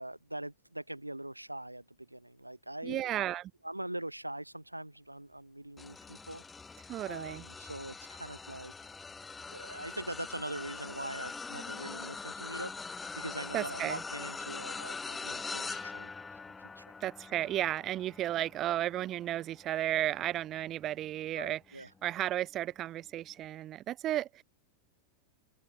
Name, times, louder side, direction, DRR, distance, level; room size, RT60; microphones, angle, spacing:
voice 1, 0.0-3.0 3.6-6.4 7.1-8.7 9.5-16.1 16.6-16.8 21.4-21.9, right 1 dB, 85° right, 1.4 m, -42 dB
voice 2, 2.8-3.5 6.9-7.4 13.5-14.0 17.0-21.6 22.0-24.4, right 13 dB, 30° right, 1.9 m, -33 dB
sound 1, 5.8-21.3 21.8-22.1 23.3-23.4, left 4 dB, 15° left, 1.1 m, -43 dB
open air
figure-of-eight pair, 90°, 0 cm